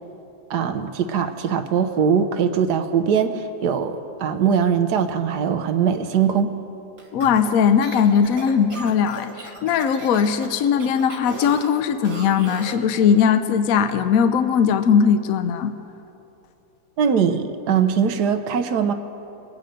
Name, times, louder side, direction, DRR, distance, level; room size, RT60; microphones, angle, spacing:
voice 1, 0.5-6.5 17.0-18.9, right 7 dB, 75° right, 9 dB, 1.4 m, -21 dB
sound 1, 7.0-12.9, right 2 dB, 55° right, 2.3 m, -37 dB
voice 2, 7.1-15.7, left 7 dB, 65° left, 10 dB, 1.0 m, -19 dB
23.0 x 9.1 x 5.2 m, 2.9 s
omnidirectional pair, 1.8 m